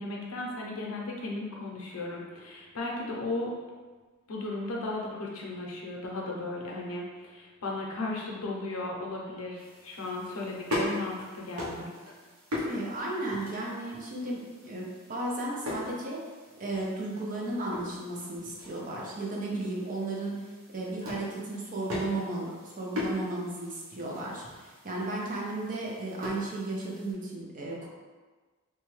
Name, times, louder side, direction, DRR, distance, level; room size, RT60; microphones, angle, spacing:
voice 1, 0.0-3.5 4.3-11.9, left 2 dB, 85° left, -2 dB, 0.6 m, -35 dB
sound 1, 9.6-27.1, left 1 dB, 80° right, 0.9 m, -40 dB
voice 2, 12.7-16.2 16.6-20.5 20.7-27.9, right 2 dB, 40° right, -3 dB, 0.6 m, -34 dB
3.1 x 2.2 x 3.1 m, 1.4 s
head